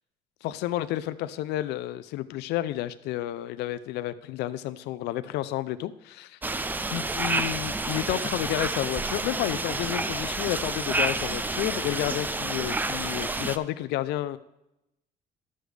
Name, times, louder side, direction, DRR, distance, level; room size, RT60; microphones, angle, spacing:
voice 1, 0.4-6.4 6.9-14.4, left 14 dB, 80° left, 14 dB, 0.4 m, -31 dB
sound 1, 6.4-13.6, right 2 dB, 10° right, 0.3 m, -29 dB
12.5 x 6.3 x 3.3 m, 0.88 s
cardioid pair, 110°, 17 cm